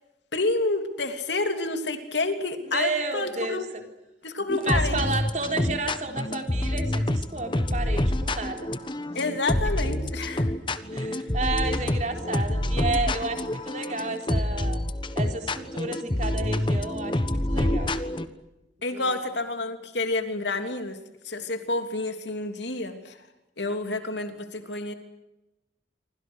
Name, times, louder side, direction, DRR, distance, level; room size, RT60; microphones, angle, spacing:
voice 1, 0.3-3.7 4.2-5.0 9.1-10.5 18.8-21.0 21.2-23.2 23.6-24.9, left 2 dB, 70° left, 7 dB, 3.2 m, -29 dB
voice 2, 2.6-3.8 4.6-8.7 10.9-14.8 15.2-17.9 18.9-19.2, right 3 dB, 40° right, 4 dB, 4.0 m, -32 dB
sound 1, 4.5-18.3, left 1 dB, 25° left, 1.3 m, -27 dB
27.5 x 25.5 x 6.4 m, 0.96 s
head